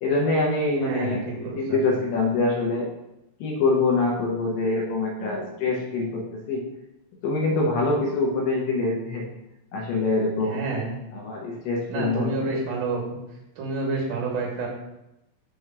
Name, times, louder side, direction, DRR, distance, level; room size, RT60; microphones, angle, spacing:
voice 1, 0.0-2.9 3.4-6.6 7.2-9.3 9.7-10.6 11.1-12.6, left 3 dB, 70° left, -1 dB, 2.5 m, -25 dB
voice 2, 0.8-2.3 10.4-10.9 11.9-13.2 13.6-14.7, right 3 dB, 65° right, -1 dB, 3.1 m, -29 dB
6.6 x 3.5 x 5.9 m, 0.90 s
omnidirectional pair, 4.3 m